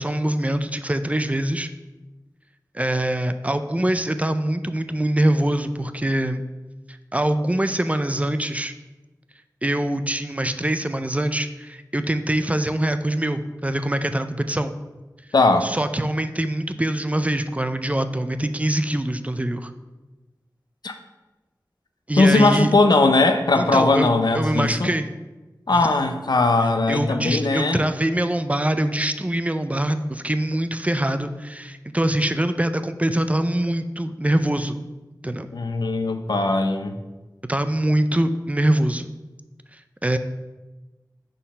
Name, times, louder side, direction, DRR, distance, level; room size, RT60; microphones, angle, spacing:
voice 1, 0.0-1.7 2.7-6.4 7.1-8.7 9.6-14.7 15.6-19.7 22.1-22.7 23.5-24.1 24.3-25.1 26.9-34.8 35.2-35.5 37.5-39.1 40.0-40.2, right 1 dB, 20° right, 10 dB, 0.4 m, -23 dB
voice 2, 15.3-15.7 20.8-21.0 22.2-24.9 25.7-27.8 35.5-37.0, left 3 dB, 80° left, 7 dB, 0.6 m, -19 dB
6.3 x 3.9 x 5.5 m, 1.1 s
wide cardioid pair, 65°, 7 cm